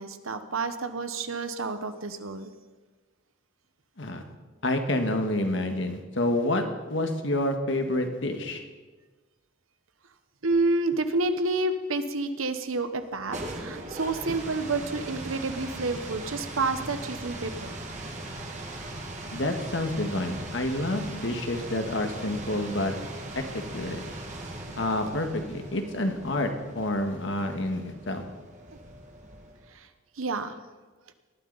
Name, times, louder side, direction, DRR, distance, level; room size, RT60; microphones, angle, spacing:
voice 1, 0.0-2.5 10.4-17.7 18.0-18.2 23.5-23.6 24.7-25.2 29.7-29.9 30.2-30.5, right 3 dB, 90° right, 9 dB, 1.1 m, -29 dB
voice 2, 4.6-8.6 19.3-22.9 23.3-23.4 23.7-24.0 24.8-28.2, left 1 dB, 65° left, 5 dB, 1.6 m, -28 dB
sound 1, 13.0-29.7, right 1 dB, 35° right, 1.9 m, -39 dB
18.5 x 12.5 x 4.1 m, 1.3 s
head